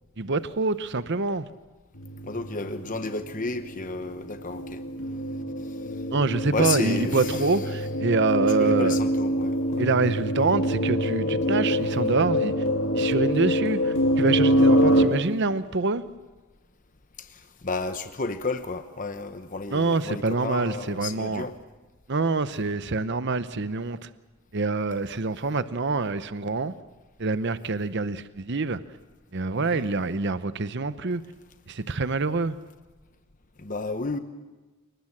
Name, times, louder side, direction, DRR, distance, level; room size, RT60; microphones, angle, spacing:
voice 1, 0.2-1.4 6.1-9.0 9.8-12.5 12.9-16.0 19.7-21.5 22.1-24.0 24.5-26.7 27.2-28.8 29.3-31.2 31.7-32.5, right 3 dB, 55° right, 0.8 m, -26 dB
sound 1, 2.0-15.1, equal, 70° left, 2.4 m, -25 dB
voice 2, 2.2-4.8 5.6-6.0 6.5-7.7 8.6-9.9 14.7-15.2 17.2-21.6 29.6-29.9 33.6-34.2, left 3 dB, 35° left, 1.0 m, -32 dB
29.0 x 19.5 x 7.4 m
head